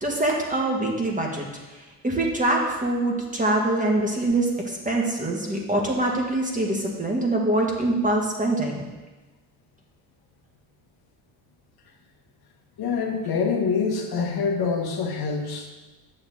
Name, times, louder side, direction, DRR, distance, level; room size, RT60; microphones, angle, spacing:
voice 1, 0.0-1.5 1.7-8.8, right 2 dB, 15° right, -1 dB, 1.8 m, -24 dB
voice 2, 12.8-15.7, left 5 dB, 55° left, 2 dB, 1.2 m, -25 dB
7.8 x 6.8 x 3.8 m, 1.2 s
supercardioid pair, 80°, 44 cm